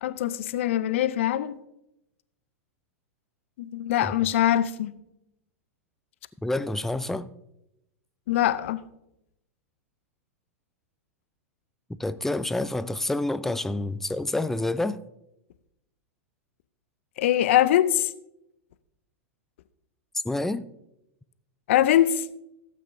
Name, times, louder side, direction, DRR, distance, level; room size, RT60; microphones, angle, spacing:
voice 1, 0.0-1.6 3.6-4.9 8.3-8.8 17.2-18.1 21.7-22.2, left 12 dB, 60° left, 0.6 m, -23 dB
voice 2, 6.4-7.3 11.9-15.0 20.2-20.6, left 2 dB, 5° left, 0.4 m, -28 dB
16.0 x 8.3 x 2.7 m
figure-of-eight pair, 95°, 8 cm